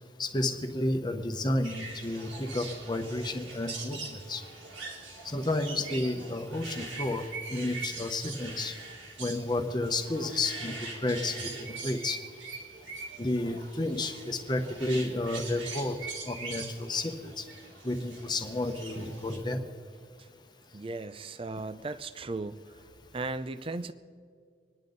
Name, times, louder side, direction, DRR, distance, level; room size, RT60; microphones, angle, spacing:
voice 1, 0.2-4.4 5.2-7.2 7.5-8.7 9.2-10.7 11.0-12.2 13.2-16.0 16.3-17.4 17.8-19.7, left 2 dB, 25° left, 6 dB, 1.0 m, -31 dB
sound 1, 1.6-19.4, right 3 dB, 90° right, 2.9 m, -43 dB
voice 2, 20.7-22.6 23.1-23.9, right 3 dB, 30° right, 12 dB, 0.5 m, -36 dB
26.0 x 10.5 x 4.0 m, 2.1 s
head